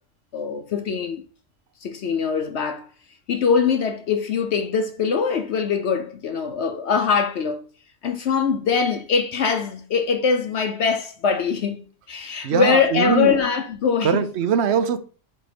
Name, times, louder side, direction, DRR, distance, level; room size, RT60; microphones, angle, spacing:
voice 1, 0.3-1.2 1.8-2.9 3.3-7.6 8.0-14.3, left 6 dB, 60° left, 0.9 m, -22 dB
voice 2, 12.4-13.4 14.0-15.0, right 7 dB, 60° right, 0.8 m, -21 dB
4.5 x 4.4 x 5.0 m
omnidirectional pair, 1.4 m